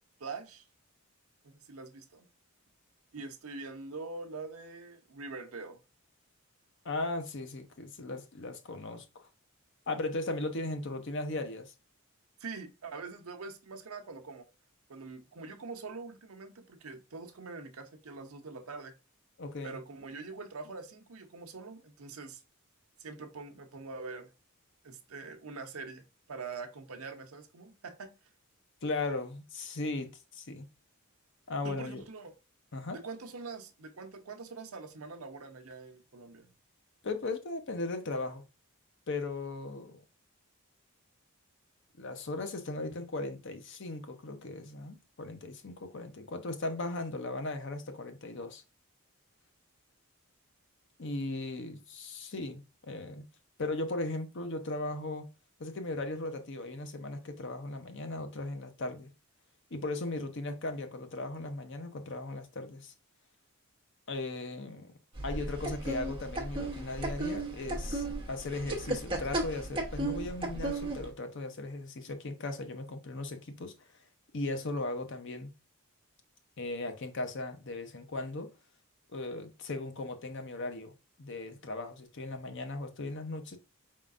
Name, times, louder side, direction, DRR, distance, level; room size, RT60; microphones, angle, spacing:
voice 1, 0.2-0.6 1.4-2.3 3.1-5.8 12.4-14.5 14.9-18.9 19.6-22.4 23.0-24.3 24.8-28.1 31.6-32.3 32.9-36.5, right 4 dB, 80° right, 0.8 m, -44 dB
voice 2, 6.8-9.0 9.9-11.7 19.4-19.8 28.8-30.7 31.5-32.0 32.7-33.0 37.0-38.4 39.1-40.0 42.0-48.6 51.0-53.2 53.6-55.3 55.6-59.1 59.7-62.9 64.1-64.9 65.2-73.7 74.3-75.5 76.6-78.5 79.1-83.6, left 2 dB, 55° left, 0.7 m, -37 dB
sound 1, 65.2-71.1, right 2 dB, 25° right, 1.0 m, -35 dB
4.7 x 3.7 x 2.4 m
head